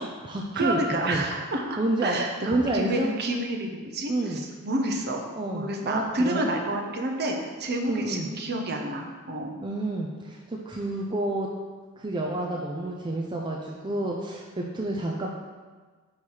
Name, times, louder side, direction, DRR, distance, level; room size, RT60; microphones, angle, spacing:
voice 1, 0.0-0.8 1.1-1.3 1.8-2.2 2.5-3.1 4.1-4.4 5.4-6.5 7.9-8.3 9.6-11.5 12.0-15.3, right 2 dB, 20° right, -1 dB, 0.5 m, -29 dB
voice 2, 0.6-5.2 5.5-9.5, right 1 dB, 50° right, 2 dB, 0.8 m, -29 dB
4.8 x 4.6 x 5.5 m, 1.4 s
head